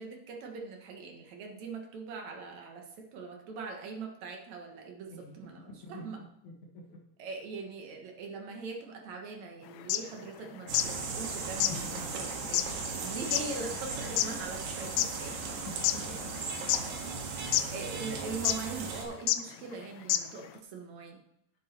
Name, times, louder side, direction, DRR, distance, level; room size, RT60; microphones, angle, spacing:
voice 1, 0.0-6.2 7.2-15.7 17.2-21.2, right 4 dB, 60° right, 2 dB, 2.1 m, -42 dB
voice 2, 5.7-6.1 6.4-7.0 15.7-16.2 17.5-17.7, left 1 dB, 60° left, 0 dB, 2.5 m, -47 dB
sound 1, 9.8-11.0 11.2-11.3 11.6-15.2 15.6-16.4 16.7-17.2 17.5-17.7 18.4-18.7 19.3-19.4 19.7-19.8 20.1-20.5, left 13 dB, 85° left, 2.5 m, -29 dB
sound 2, 10.7-19.0, right 4 dB, 85° right, 3.7 m, -37 dB
10.5 x 8.5 x 4.4 m, 0.79 s
omnidirectional pair, 4.6 m